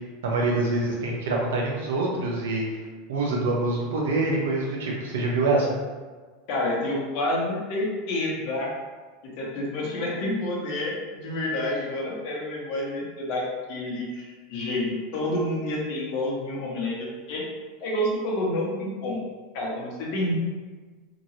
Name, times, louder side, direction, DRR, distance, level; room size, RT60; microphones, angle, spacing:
voice 1, 0.2-2.7 3.1-5.7, right 2 dB, 85° right, -2 dB, 0.8 m, -25 dB
voice 2, 6.5-8.7 9.2-17.5 17.8-19.2 19.5-20.3, left 1 dB, 60° left, -3 dB, 1.0 m, -29 dB
2.9 x 2.6 x 2.8 m, 1.4 s
hypercardioid pair, 110°, 0 cm